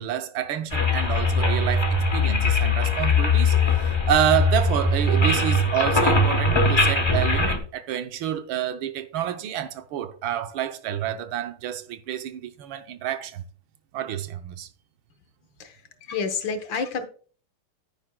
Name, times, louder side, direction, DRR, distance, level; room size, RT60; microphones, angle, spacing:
voice 1, 0.0-3.5 4.1-13.4 13.9-14.7, right 10 dB, 80° right, 1.5 m, -28 dB
sound 1, 0.7-7.6, left 2 dB, 25° left, 0.5 m, -21 dB
voice 2, 15.6-17.0, left 5 dB, 70° left, 1.8 m, -29 dB
9.8 x 9.4 x 2.2 m
omnidirectional pair, 2.3 m